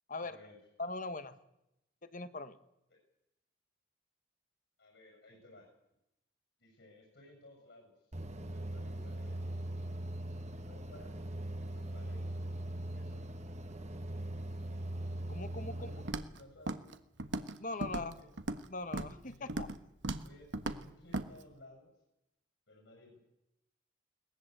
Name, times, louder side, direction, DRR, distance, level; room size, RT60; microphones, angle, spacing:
voice 1, 0.2-0.6 2.9-3.0 4.8-5.7 6.6-8.1 8.5-9.5 10.4-11.3 11.5-12.5 12.9-13.3 15.6-16.9 17.8-18.3 19.2-19.6 20.2-21.9 22.7-23.2, left 1 dB, 65° left, 0 dB, 7.2 m, -58 dB
voice 2, 0.8-1.4 2.0-2.6 15.3-15.9 17.6-18.1 18.7-19.7, left 3 dB, 45° left, 11 dB, 1.3 m, -41 dB
sound 1, 8.1-16.1, right 1 dB, 35° right, 1.5 m, -40 dB
Walk footsteps, 16.1-16.4 16.7-16.9 17.2-17.6 17.8-18.6 18.9-19.2 19.5-19.8 20.0-20.3 20.5-20.8 21.1-21.3, right 2 dB, 65° right, 1.3 m, -37 dB
21.5 x 19.5 x 8.1 m, 0.87 s
head